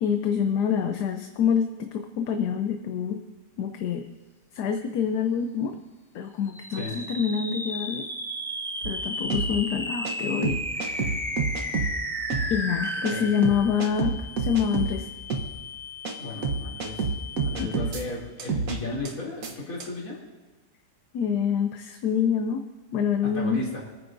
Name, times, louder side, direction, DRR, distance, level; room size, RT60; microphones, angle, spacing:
voice 1, 0.0-3.2 3.6-4.1 4.5-5.8 6.1-8.1 8.8-11.2 12.5-15.1 17.6-17.9 21.1-22.6 22.9-23.6, left 7 dB, 75° left, 6 dB, 1.3 m, -26 dB
sound 1, 6.5-18.0, equal, 5° left, 0.5 m, -34 dB
sound 2, 8.8-9.0 9.3-9.5 10.0-10.1 10.4-11.9 12.3-12.5 13.1-13.2 13.4-14.9 15.3-15.5 16.1-16.2 16.4-18.0 18.4-18.8 19.1-19.2 19.4-19.5 19.8-19.9, right 4 dB, 60° right, 1.4 m, -28 dB
voice 2, 16.2-17.0 17.4-20.2 23.2-23.8, left 2 dB, 55° left, -5 dB, 3.4 m, -35 dB
28.5 x 9.5 x 2.6 m, 1.3 s
omnidirectional pair, 1.8 m